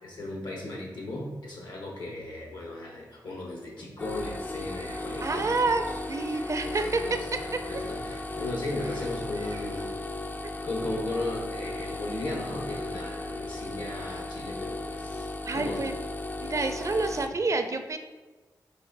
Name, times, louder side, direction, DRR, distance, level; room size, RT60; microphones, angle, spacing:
voice 1, 0.0-5.8 6.6-9.9 10.6-15.8 17.1-17.2, left 2 dB, 80° left, -1 dB, 1.1 m, -36 dB
sound 1, 4.0-17.3, left 2 dB, 25° left, 0.3 m, -36 dB
sound 2, 4.6-9.9, right 2 dB, 85° right, 0.7 m, -49 dB
voice 2, 5.2-7.0 15.4-15.9 16.4-18.0, right 3 dB, 45° right, 7 dB, 0.4 m, -28 dB
4.0 x 2.9 x 3.8 m, 1.2 s
cardioid pair, 50°, 7 cm